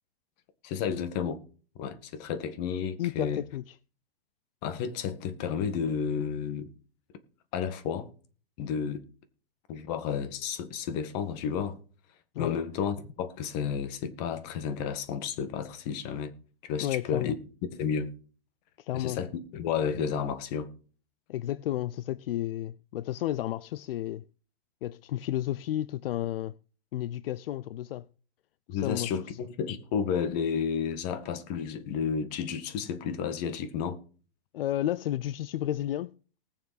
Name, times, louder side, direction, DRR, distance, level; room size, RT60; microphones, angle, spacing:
voice 1, 0.6-1.4 1.8-3.4 4.6-6.7 7.5-8.1 8.6-9.0 9.7-11.8 12.4-16.3 16.6-17.3 17.7-18.1 18.9-20.7 28.7-34.0, left 7 dB, 45° left, 1.8 m, -32 dB
voice 2, 3.0-3.7 12.3-12.6 16.8-17.4 18.8-19.2 21.3-24.2 24.8-26.6 26.9-28.1 28.7-29.4 34.5-36.1, left 13 dB, 75° left, 0.6 m, -32 dB
19.0 x 7.2 x 4.2 m
hypercardioid pair, 145°, 29 cm